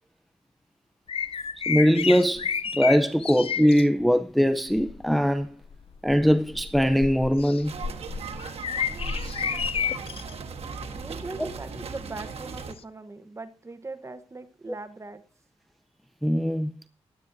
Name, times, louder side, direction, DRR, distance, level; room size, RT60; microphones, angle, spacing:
sound 1, 1.1-3.8 4.7-5.0 5.6-10.3 10.8-11.0 12.8-12.9, left 7 dB, 60° left, 0.6 m, -31 dB
voice 1, 1.7-5.6 6.0-7.8 11.4-11.5 16.2-16.7, equal, ahead, 0.5 m, -21 dB
sound 2, 7.6-12.7, right 5 dB, 70° right, 1.4 m, -38 dB
voice 2, 10.9-15.2, right 3 dB, 25° right, 1.0 m, -40 dB
16.0 x 11.0 x 2.7 m
cardioid pair, 90°, 11 cm